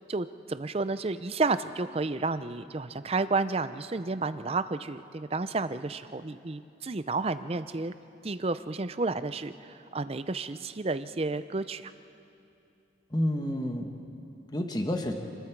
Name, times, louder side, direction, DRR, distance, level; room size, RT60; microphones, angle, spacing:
voice 1, 0.1-7.9 8.2-11.9, right 3 dB, 30° right, 12 dB, 0.5 m, -31 dB
voice 2, 13.1-15.1, left 1 dB, 20° left, 4 dB, 1.3 m, -30 dB
28.5 x 21.0 x 4.7 m, 2.7 s
head